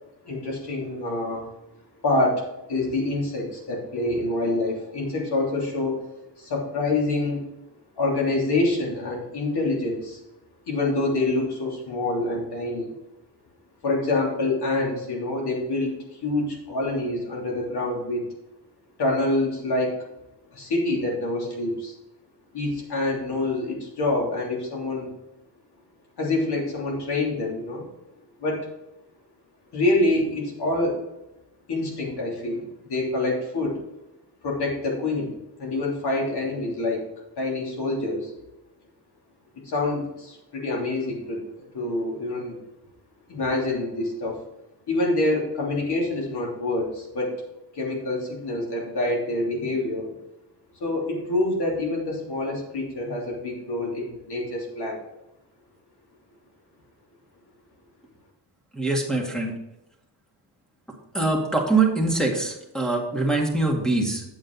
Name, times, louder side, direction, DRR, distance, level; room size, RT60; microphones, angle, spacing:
voice 1, 0.2-1.4 2.0-6.0 6.4-7.4 8.0-10.2 10.7-12.9 13.8-18.2 19.0-19.9 20.5-21.9 22.5-25.1 26.2-27.9 28.4-28.7 29.7-31.0 31.7-33.8 34.4-35.3 35.6-37.0 37.4-38.3 39.6-42.6 43.3-44.4 44.9-47.3 47.7-50.1 50.8-55.0, left 2 dB, 70° left, -2 dB, 3.2 m, -26 dB
voice 2, 58.7-59.5 61.1-64.2, right 3 dB, ahead, -1 dB, 1.9 m, -23 dB
9.0 x 7.8 x 4.0 m, 0.92 s
wide cardioid pair, 130°, 41 cm